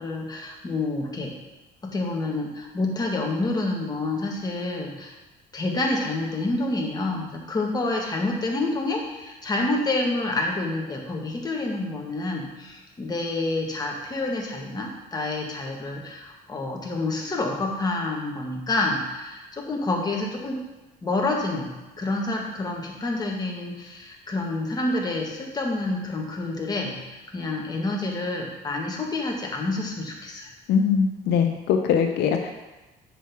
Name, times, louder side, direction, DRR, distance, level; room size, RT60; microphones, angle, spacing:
voice 1, 0.0-1.3 1.8-5.1 5.5-20.6 21.0-21.7 22.0-30.5, left 2 dB, 25° left, -1 dB, 1.5 m, -28 dB
voice 2, 30.7-32.5, left 7 dB, 80° left, 5 dB, 0.6 m, -22 dB
7.4 x 6.0 x 3.5 m, 1.1 s
cardioid pair, 110°, 17 cm